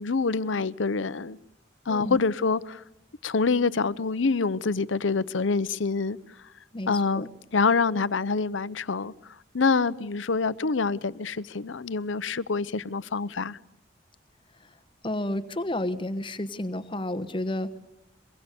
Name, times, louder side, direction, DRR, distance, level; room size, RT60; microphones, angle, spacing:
voice 1, 0.0-1.4 1.9-2.8 3.2-6.2 6.9-7.3 7.5-9.1 9.5-13.6, left 4 dB, 90° left, 0.7 m, -26 dB
voice 2, 6.7-7.3 15.0-17.8, left 1 dB, 25° left, 1.2 m, -31 dB
23.5 x 22.5 x 6.8 m
head